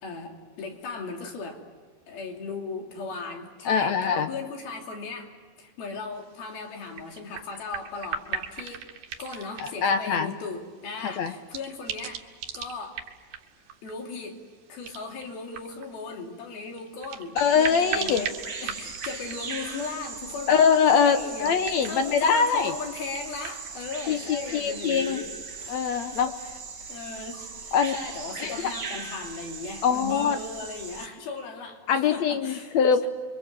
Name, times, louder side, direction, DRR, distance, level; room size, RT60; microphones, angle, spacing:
voice 1, 0.0-1.6 2.1-5.3 5.6-8.9 9.2-12.2 12.5-13.0 13.8-14.4 14.7-20.6 20.9-25.3 26.4-26.5 26.9-32.8, left 4 dB, 85° left, 2 dB, 4.8 m, -37 dB
voice 2, 3.7-4.3 9.6-10.3 11.0-11.3 17.4-18.3 20.5-22.7 24.1-25.2 25.7-26.3 27.7-28.0 28.4-28.7 29.8-30.4 31.9-33.1, left 6 dB, 70° left, 9 dB, 1.8 m, -23 dB
sound 1, 6.1-23.7, right 8 dB, 70° right, 3.0 m, -40 dB
Bird vocalization bird call bird song, 17.4-31.1, right 5 dB, 40° right, 1.7 m, -39 dB
30.0 x 24.0 x 7.5 m, 1.5 s
omnidirectional pair, 4.2 m